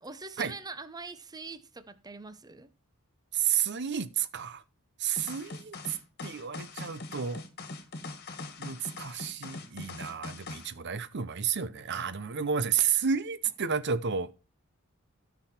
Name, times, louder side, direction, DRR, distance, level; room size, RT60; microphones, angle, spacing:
voice 1, 0.0-2.7 12.8-12.9, right 3 dB, 20° right, 0.8 m, -43 dB
voice 2, 3.3-4.6 5.0-6.0 6.2-7.4 8.6-14.3, right 7 dB, 55° right, 0.7 m, -31 dB
sound 1, 5.2-10.7, left 3 dB, 50° left, 1.8 m, -41 dB
13.5 x 6.2 x 4.4 m
head